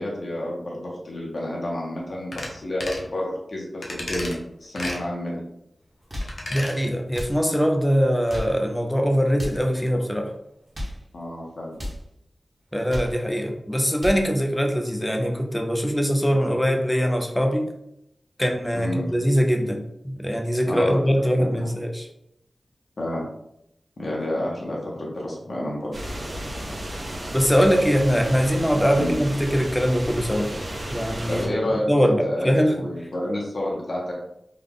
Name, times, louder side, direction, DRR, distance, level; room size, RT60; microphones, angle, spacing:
voice 1, 0.0-5.4 11.1-11.8 18.7-19.1 20.6-21.7 23.0-23.2 24.0-25.9 28.9-29.2 31.3-34.1, left 1 dB, 60° left, -3 dB, 1.0 m, -29 dB
sound 1, 2.3-2.5 2.8-3.1 3.8-4.4 4.8-5.0 6.2-6.8 7.1-7.2, left 1 dB, 80° left, 0.7 m, -33 dB
sound 2, 5.9-6.4 7.1-7.4 8.1-8.6 9.3-9.7 10.5-11.0 11.7-12.0 12.7-13.2 13.8-14.3, equal, 25° right, 1.1 m, -33 dB
voice 2, 6.5-10.3 12.7-17.7 18.4-22.1 27.3-30.5 30.9-32.9, equal, 10° left, 3 dB, 0.5 m, -22 dB
sound 3, 25.9-31.5, right 1 dB, 60° right, 1.0 m, -33 dB
3.6 x 2.3 x 3.6 m, 0.80 s
wide cardioid pair, 95°, 0 cm